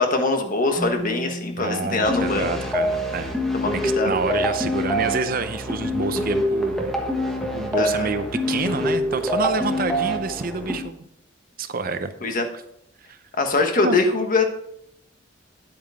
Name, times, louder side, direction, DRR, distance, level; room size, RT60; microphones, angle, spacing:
voice 1, 0.0-2.5 3.5-4.1 7.8-8.1 12.2-12.4 13.4-14.4, left 3 dB, 45° left, 5 dB, 1.3 m, -22 dB
Keyboard (musical), 0.8-4.0, equal, 25° left, 1.6 m, -37 dB
voice 2, 1.6-3.4 3.7-6.9 7.5-11.1 11.6-12.1 13.1-13.2 13.8-14.0, right 4 dB, 50° right, 10 dB, 0.6 m, -27 dB
sound 1, 2.0-10.8, left 1 dB, ahead, 1.3 m, -25 dB
9.3 x 8.5 x 3.5 m, 0.74 s
head